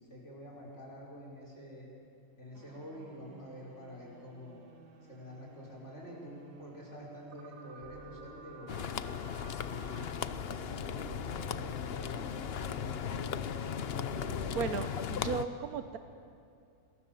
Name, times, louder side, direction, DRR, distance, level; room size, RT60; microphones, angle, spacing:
voice 1, 0.0-1.9 2.4-4.6 5.1-8.8 9.6-10.3 10.7-13.4, equal, 35° left, -3 dB, 5.7 m, -48 dB
sound 1, 2.5-15.3, right 4 dB, 75° right, 2.5 m, -53 dB
sound 2, 7.8-14.9, equal, 10° right, 1.1 m, -53 dB
sound 3, 8.7-15.5, left 8 dB, 80° left, 0.5 m, -37 dB
voice 2, 14.5-16.0, right 7 dB, 60° right, 8 dB, 1.1 m, -35 dB
27.5 x 20.5 x 7.7 m, 2.5 s
omnidirectional pair, 2.0 m